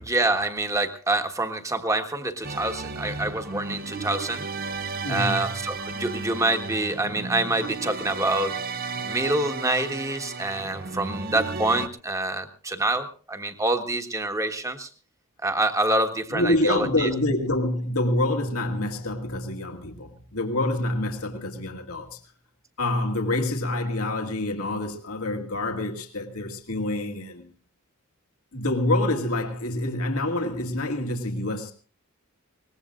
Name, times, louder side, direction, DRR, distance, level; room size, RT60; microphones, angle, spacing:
voice 1, 0.1-4.4 5.1-8.5 9.0-14.9 15.4-17.1, right 2 dB, 15° right, 1.3 m, -26 dB
sound 1, 2.4-11.9, right 4 dB, 40° right, 0.7 m, -34 dB
voice 2, 5.0-5.5 16.3-22.2 22.8-27.5 28.5-31.7, left 1 dB, 90° left, 2.0 m, -27 dB
23.0 x 19.5 x 2.5 m
head